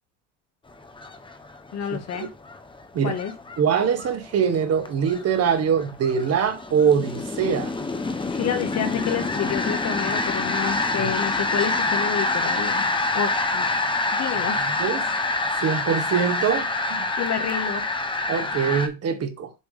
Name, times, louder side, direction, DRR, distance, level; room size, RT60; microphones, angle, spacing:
sound 1, 0.8-18.9, left 2 dB, 15° left, 1.0 m, -27 dB
voice 1, 1.7-2.3 3.0-3.3 8.3-12.8 13.1-13.8 14.1-14.7 14.9-15.1 17.2-17.9, left 8 dB, 45° left, 1.6 m, -29 dB
voice 2, 3.6-7.7 11.0-11.1 14.3-14.5 14.8-15.1 15.6-17.1 18.3-19.5, right 7 dB, 40° right, 1.6 m, -23 dB
7.2 x 3.4 x 5.1 m
cardioid pair, 115°, 37 cm